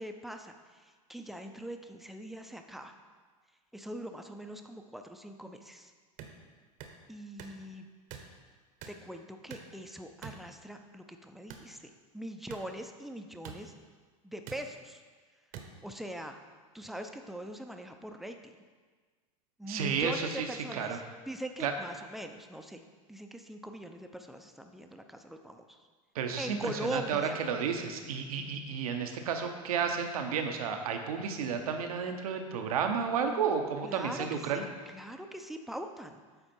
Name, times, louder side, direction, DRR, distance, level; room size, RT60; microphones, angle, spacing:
voice 1, 0.0-2.9 3.7-5.9 7.1-7.9 8.9-13.7 14.2-15.0 15.8-16.4 16.7-18.6 19.6-21.0 21.3-22.8 23.1-25.8 26.4-27.4 33.8-36.2, right 1 dB, ahead, 5 dB, 0.6 m, -42 dB
sound 1, 6.2-6.3 6.8-7.0 7.4-7.6 8.1-8.3 8.8-9.0 9.5-9.7 10.2-10.4 11.5-11.7 12.5-12.6 13.4-13.6 14.5-14.6 15.5-15.7, right 8 dB, 50° right, 0.9 m, -44 dB
voice 2, 19.7-20.5 20.7-21.0 21.6-21.7 26.1-34.6, right 6 dB, 80° right, 5 dB, 0.8 m, -32 dB
8.0 x 4.3 x 4.4 m, 1.5 s
hypercardioid pair, 95°, 18 cm